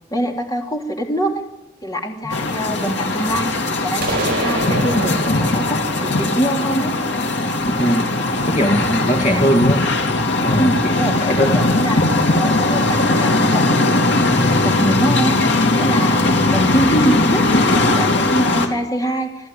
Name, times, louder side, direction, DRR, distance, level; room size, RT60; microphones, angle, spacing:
voice 1, 0.1-1.4 1.8-3.5 3.8-6.9 10.6-11.1 11.5-12.1 12.4-15.4 15.7-19.5, right 1 dB, 20° left, 1 dB, 3.4 m, -24 dB
sound 1, 2.3-18.7, left 2 dB, 75° left, 3.0 m, -18 dB
sound 2, 4.0-7.8, right 2 dB, 55° right, 7.9 m, -28 dB
voice 2, 7.7-8.0 8.4-9.8 10.4-10.9 11.2-11.6, equal, 40° left, 2 dB, 2.3 m, -19 dB
26.5 x 14.5 x 9.4 m, 0.95 s
head